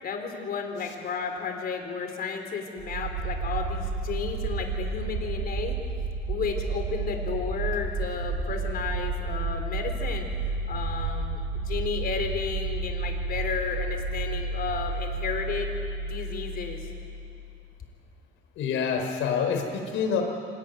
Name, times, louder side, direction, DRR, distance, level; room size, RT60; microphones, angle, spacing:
voice 1, 0.0-5.8 6.3-10.3 10.7-15.7 16.0-16.9, left 5 dB, 50° left, 4 dB, 3.9 m, -33 dB
sound 1, 2.8-17.6, right 3 dB, 70° right, 3.2 m, -31 dB
voice 2, 18.6-20.2, left 6 dB, 80° left, 4 dB, 4.3 m, -27 dB
26.5 x 18.5 x 9.2 m, 2.5 s
cardioid pair, 140°, 20 cm